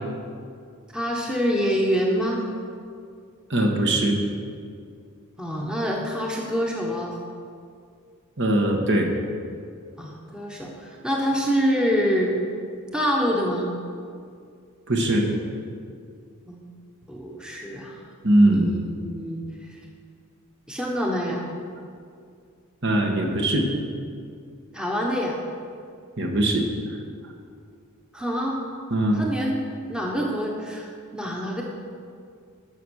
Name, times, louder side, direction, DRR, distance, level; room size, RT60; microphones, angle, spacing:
voice 1, 0.9-2.4 5.4-7.2 10.0-12.3 12.9-13.7 16.5-16.6 17.1-18.0 18.4-19.4 20.7-21.4 24.7-25.4 28.1-28.6 29.1-31.6, equal, 5° right, -2 dB, 1.1 m, -26 dB
voice 2, 3.5-4.2 8.4-9.1 14.9-15.3 18.2-18.7 22.8-23.7 26.2-26.7 28.9-29.2, right 1 dB, 55° right, 2 dB, 1.4 m, -20 dB
13.0 x 6.5 x 6.3 m, 2.3 s
head